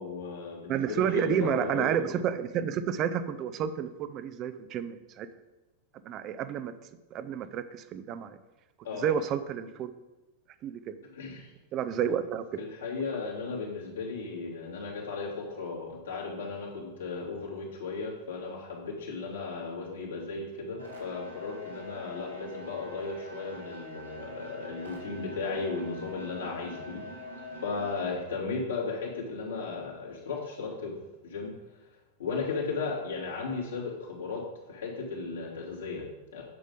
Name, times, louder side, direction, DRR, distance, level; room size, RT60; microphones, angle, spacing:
voice 1, 0.0-1.9 8.8-9.1 11.1-11.5 12.6-27.0 27.6-30.9 31.2-31.5 32.2-36.4, left 4 dB, 65° left, -4 dB, 2.6 m, -35 dB
voice 2, 0.7-5.3 6.0-6.7 7.1-8.4 9.0-9.9 10.6-10.9 11.7-12.5, right 8 dB, 35° right, 12 dB, 0.7 m, -30 dB
sound 1, 20.8-27.9, left 1 dB, 85° right, 2.8 m, -44 dB
9.6 x 6.7 x 5.1 m, 1.1 s
figure-of-eight pair, 90°, 0 cm